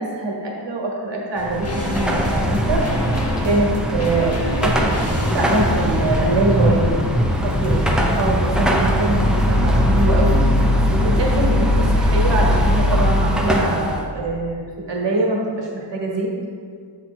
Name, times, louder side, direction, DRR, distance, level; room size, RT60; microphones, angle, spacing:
voice 1, 0.0-2.8 3.4-7.0 7.4-10.4 10.9-16.3, right 2 dB, 65° right, -1 dB, 1.4 m, -23 dB
sound 1, 1.3-10.7 11.0-11.1, left 2 dB, 35° left, 0.7 m, -33 dB
Car passing by / Traffic noise roadway noise / Engine, 1.4-14.0, equal, ahead, 0.4 m, -19 dB
sound 2, 6.5-11.9, left 1 dB, 85° left, 1.5 m, -31 dB
7.6 x 4.3 x 4.3 m, 2.1 s
wide cardioid pair, 180°, 46 cm